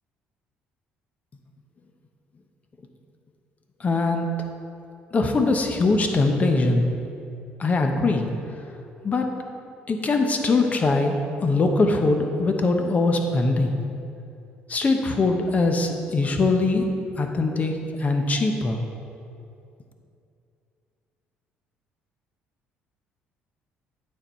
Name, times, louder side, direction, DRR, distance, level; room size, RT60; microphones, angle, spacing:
voice 1, 3.8-4.3 5.1-6.9 7.6-8.3 9.0-9.3 9.9-13.8 14.7-16.9 17.2-18.8, left 3 dB, 35° left, 4 dB, 0.9 m, -22 dB
8.8 x 5.5 x 4.4 m, 2.6 s
supercardioid pair, 80°, 4 cm